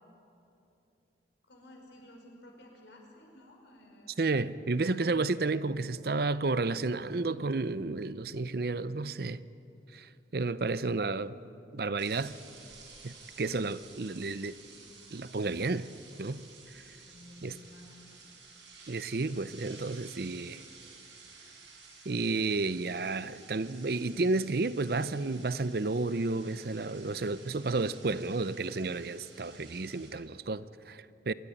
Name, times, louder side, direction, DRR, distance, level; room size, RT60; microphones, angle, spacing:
voice 1, 1.5-4.2 17.0-18.2, left 1 dB, 80° left, 5.4 m, -54 dB
voice 2, 4.2-9.4 9.9-11.3 11.7-12.3 13.0-14.5 15.1-15.9 16.2-16.4 16.7-16.8 17.4-17.6 18.9-20.6 22.1-31.3, right 3 dB, 55° right, 0.6 m, -31 dB
sound 1, 12.0-30.1, right 4 dB, 85° right, 7.1 m, -53 dB
27.0 x 13.0 x 10.0 m
head